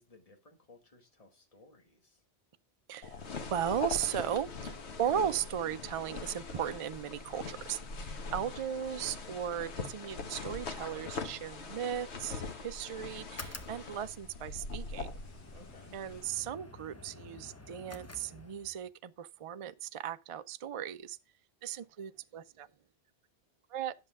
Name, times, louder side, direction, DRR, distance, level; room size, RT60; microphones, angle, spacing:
voice 1, 0.0-2.2 15.5-16.0, left 2 dB, 35° left, 1.7 m, -59 dB
voice 2, 2.9-15.2 15.9-21.2 21.6-22.7 23.7-23.9, right 9 dB, 50° right, 0.4 m, -37 dB
sound 1, 3.0-16.4, left 4 dB, 90° left, 1.4 m, -42 dB
sound 2, 13.3-18.9, left 2 dB, 20° left, 0.6 m, -50 dB
10.5 x 6.6 x 3.5 m
omnidirectional pair, 1.1 m